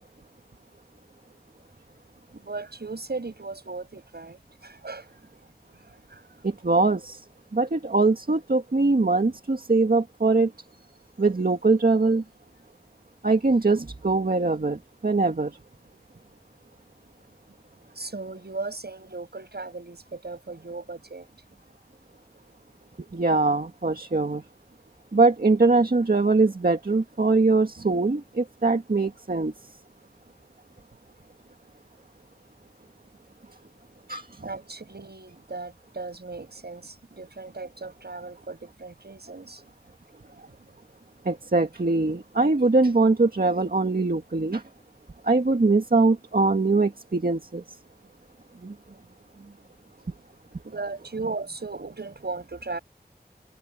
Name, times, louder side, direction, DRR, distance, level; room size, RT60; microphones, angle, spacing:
voice 1, 2.3-5.0 6.1-6.2 18.0-21.3 34.4-39.6 50.6-52.8, right 3 dB, 85° right, 6.7 m, -37 dB
voice 2, 6.4-7.2 7.5-10.5 11.2-12.2 13.2-15.6 23.1-24.4 25.1-29.5 34.1-34.4 41.2-44.6 45.2-47.8 48.6-48.8, right 3 dB, 65° right, 1.9 m, -22 dB
wide cardioid pair, 50°, 16 cm